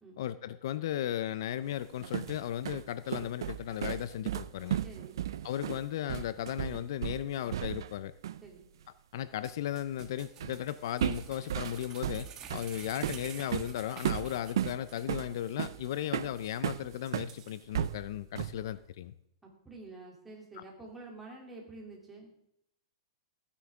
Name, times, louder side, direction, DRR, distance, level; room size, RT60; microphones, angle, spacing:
voice 1, 0.2-4.8 5.4-8.1 9.1-19.1 20.6-20.7, left 11 dB, 65° left, 15 dB, 0.5 m, -36 dB
sound 1, 1.8-8.0 8.2-8.5 10.4-10.6 11.0-17.3 17.7-18.7, right 10 dB, 75° right, 0.5 m, -35 dB
voice 2, 4.8-5.2 8.4-8.7 12.5-12.6 19.4-22.3, right 3 dB, 10° right, -2 dB, 2.9 m, -48 dB
sound 2, 9.4-15.2 15.5-15.6 16.0-16.1 16.4-16.6 17.1-17.9 18.4-18.5, right 7 dB, 25° right, 1.4 m, -50 dB
15.0 x 9.9 x 3.6 m, 0.77 s
hypercardioid pair, 150°, 2 cm